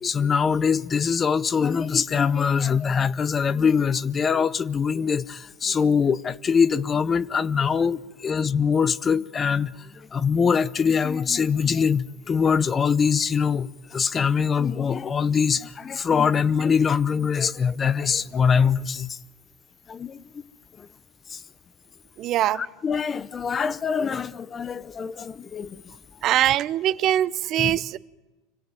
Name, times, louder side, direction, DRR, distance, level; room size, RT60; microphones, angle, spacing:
voice 1, 0.0-19.2 19.9-20.4 20.8-20.9 21.3-21.4 22.5-25.8 27.6-27.8, left 6 dB, 25° left, 0.8 m, -23 dB
voice 2, 22.2-22.6 26.2-28.0, right 12 dB, 45° right, 0.8 m, -22 dB
26.0 x 17.0 x 9.2 m
supercardioid pair, 125°, 0 cm